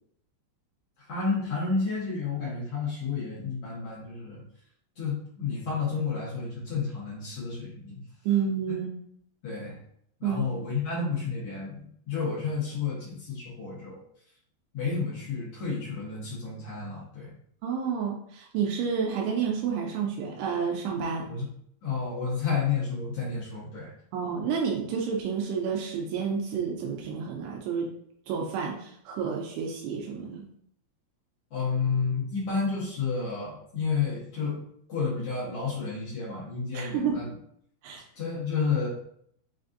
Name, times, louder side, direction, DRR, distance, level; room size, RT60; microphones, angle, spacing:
voice 1, 1.1-4.4 5.0-8.0 9.4-9.8 10.2-14.0 14.7-17.3 21.3-21.5 21.8-23.9 31.5-34.6 34.9-37.3 38.1-38.9, left 5 dB, 80° left, -8 dB, 1.3 m, -31 dB
voice 2, 8.3-8.9 10.2-10.4 17.6-21.3 24.1-27.9 28.3-30.5 36.7-37.2 37.8-38.0, right 6 dB, 85° right, -1 dB, 2.7 m, -30 dB
6.4 x 2.5 x 2.5 m, 0.68 s
omnidirectional pair, 4.8 m